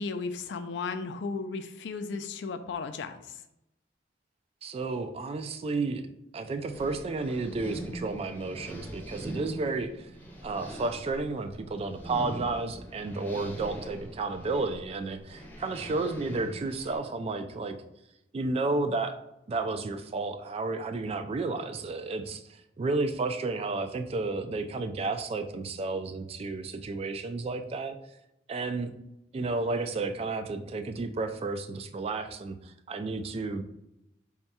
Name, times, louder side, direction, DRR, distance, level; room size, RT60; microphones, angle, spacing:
voice 1, 0.0-3.4, left 4 dB, 75° left, 9 dB, 0.4 m, -35 dB
voice 2, 4.6-6.0 6.3-10.1 10.4-17.8 18.3-19.2 19.5-28.0 28.5-28.9 29.3-33.6, right 3 dB, 35° right, 8 dB, 0.3 m, -32 dB
sound 1, 6.7-17.0, equal, 10° left, 0.7 m, -43 dB
3.5 x 2.2 x 4.1 m, 0.84 s
head